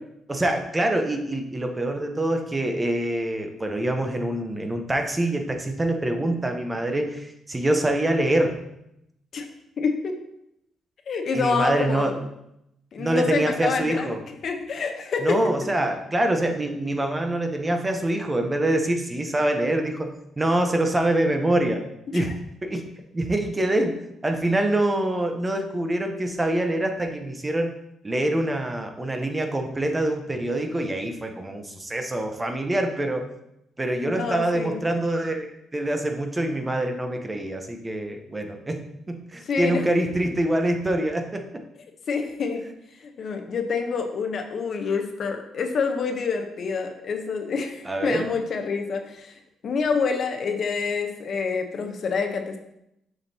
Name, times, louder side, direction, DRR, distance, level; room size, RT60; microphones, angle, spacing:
voice 1, 0.3-8.6 11.3-12.1 13.0-14.2 15.2-21.8 22.1-22.3 22.6-22.9 23.1-24.0 24.2-27.7 28.0-33.3 33.8-41.5 47.8-48.3, right 1 dB, 20° right, 5 dB, 0.8 m, -25 dB
voice 2, 9.8-10.2 11.1-12.1 12.9-14.1 14.4-15.4 22.1-22.3 34.0-34.8 39.4-39.9 42.1-42.6 43.0-52.6, left 5 dB, 55° left, 4 dB, 0.8 m, -27 dB
7.2 x 5.2 x 2.8 m, 0.82 s
cardioid pair, 90°, 0 cm